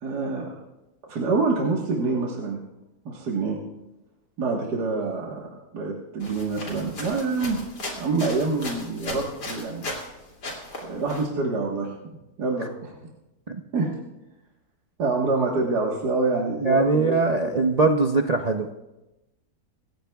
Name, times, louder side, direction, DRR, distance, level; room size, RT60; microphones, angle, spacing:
voice 1, 0.0-0.5 1.1-2.6 3.1-3.6 4.4-7.6 8.0-9.9 10.8-13.0 13.7-13.9 15.0-17.5, right 3 dB, 80° right, -2 dB, 2.0 m, -26 dB
sound 1, 6.2-10.1 10.4-11.3, left 2 dB, 90° left, 3.3 m, -36 dB
voice 2, 16.6-18.7, right 3 dB, 60° right, 3 dB, 0.4 m, -21 dB
26.5 x 14.5 x 2.3 m, 1.0 s
omnidirectional pair, 1.7 m